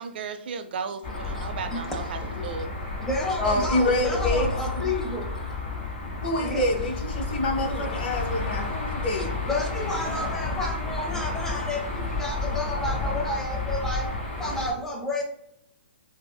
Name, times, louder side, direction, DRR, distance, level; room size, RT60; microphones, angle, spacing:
voice 1, 0.0-2.7, right 6 dB, 60° right, 0.4 m, -35 dB
sound 1, 1.0-14.7, left 3 dB, 30° left, 1.2 m, -31 dB
voice 2, 1.4-1.8 2.2-2.5 3.0-5.4 6.4-6.7 7.7-8.0 9.5-14.1 14.4-15.2, left 1 dB, 5° left, 0.6 m, -31 dB
voice 3, 3.4-4.5 6.2-9.3, left 2 dB, 50° left, 1.0 m, -26 dB
4.6 x 2.1 x 2.2 m
hypercardioid pair, 140°, 6 cm